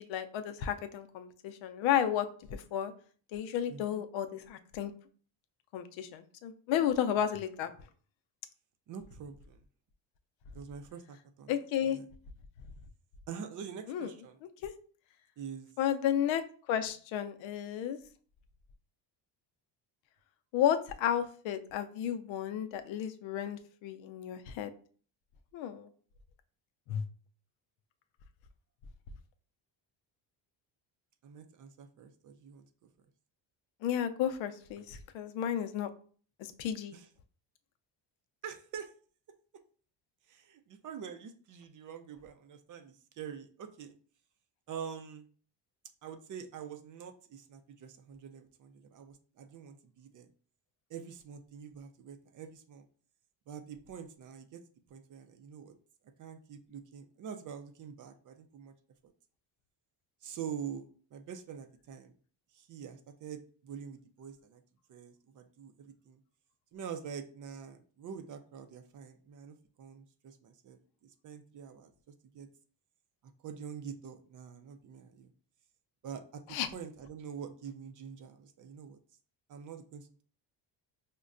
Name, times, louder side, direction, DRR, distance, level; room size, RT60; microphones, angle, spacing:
voice 1, 0.0-2.9 3.3-4.9 5.7-7.7 11.5-12.0 13.9-14.1 14.6-14.7 15.8-18.0 20.5-24.7 25.5-25.9 26.9-27.0 33.8-35.9 36.4-36.9 76.5-76.7, left 10 dB, 85° left, 8 dB, 0.6 m, -32 dB
voice 2, 3.7-4.0 8.9-9.6 10.5-11.5 11.8-12.1 13.3-14.4 15.4-15.7 31.2-32.6 36.9-37.1 38.4-38.9 40.3-44.0 44.7-45.3 46.0-50.3 50.9-52.9 53.5-54.6 54.9-55.7 56.2-58.7 60.2-60.9 61.1-62.1 62.5-64.6 64.9-66.2 66.7-70.8 71.2-71.9 72.3-72.5 73.4-75.3 76.0-76.4 76.7-79.0 79.5-80.2, right 7 dB, 45° right, 8 dB, 0.4 m, -45 dB
5.2 x 2.2 x 2.4 m, 0.44 s
cardioid pair, 140°, 45 cm